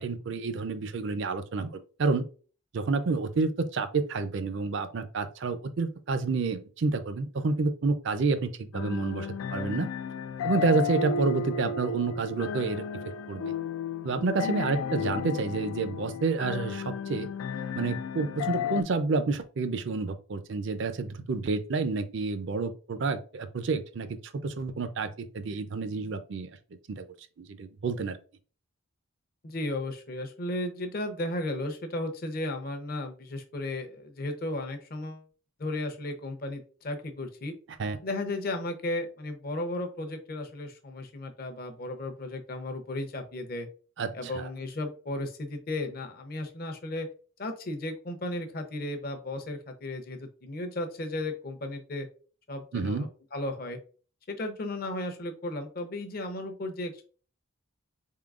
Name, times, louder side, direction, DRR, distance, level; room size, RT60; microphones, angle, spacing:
voice 1, 0.0-2.2 2.7-9.9 10.4-12.8 13.3-13.5 14.0-17.3 17.7-24.2 24.4-26.5 26.9-27.0 27.4-28.2 37.8-38.0 44.0-44.5 52.7-53.1, right 4 dB, 60° right, 0.4 m, -29 dB
sound 1, 8.7-18.8, left 6 dB, 85° left, 0.3 m, -33 dB
voice 2, 29.4-35.2 35.6-37.5 38.0-43.7 44.1-47.1 47.4-52.1 52.5-53.8 54.3-57.0, left 1 dB, 45° left, 0.6 m, -35 dB
3.9 x 3.7 x 2.4 m
head